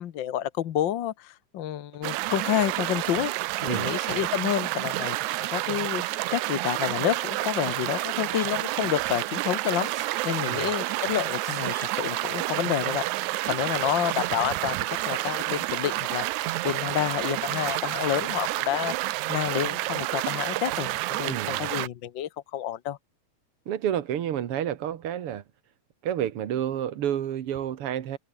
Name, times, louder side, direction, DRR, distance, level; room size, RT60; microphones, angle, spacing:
voice 1, 0.0-3.3 3.6-6.0 6.3-9.9 10.2-13.0 13.5-23.0, left 11 dB, 65° left, 1.2 m, -29 dB
sound 1, 2.0-21.9, right 18 dB, 85° right, 2.0 m, -29 dB
sound 2, 7.1-18.3, left 5 dB, 85° left, 6.0 m, -52 dB
Sneeze, 8.3-8.6 9.6-10.5 11.1-12.0 13.3-13.5, right 2 dB, 25° right, 0.4 m, -46 dB
voice 2, 21.3-21.7 23.7-25.4 26.0-28.2, right 10 dB, 55° right, 2.0 m, -30 dB
omnidirectional pair, 3.3 m